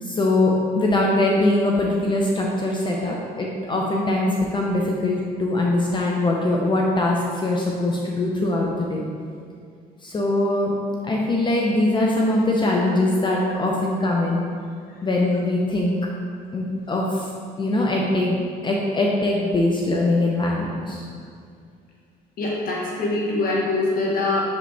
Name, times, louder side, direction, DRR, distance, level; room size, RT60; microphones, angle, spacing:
voice 1, 0.0-9.0 10.0-10.7 11.0-14.5 15.0-15.9 16.5-17.3 17.6-21.1, left 2 dB, 30° left, -2 dB, 0.7 m, -22 dB
voice 2, 22.4-24.4, left 2 dB, 60° left, -4 dB, 1.4 m, -23 dB
7.0 x 5.1 x 3.4 m, 2.2 s
cardioid pair, 110°, 17 cm